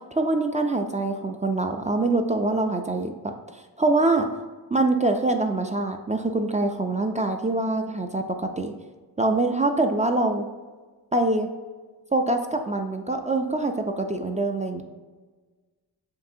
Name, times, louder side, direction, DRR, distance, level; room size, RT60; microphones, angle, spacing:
voice 1, 0.1-4.3 4.7-8.7 9.2-10.4 11.1-11.5 12.1-14.8, right 2 dB, 20° right, 5 dB, 0.3 m, -24 dB
7.2 x 2.7 x 2.7 m, 1.3 s
cardioid pair, 75°, 41 cm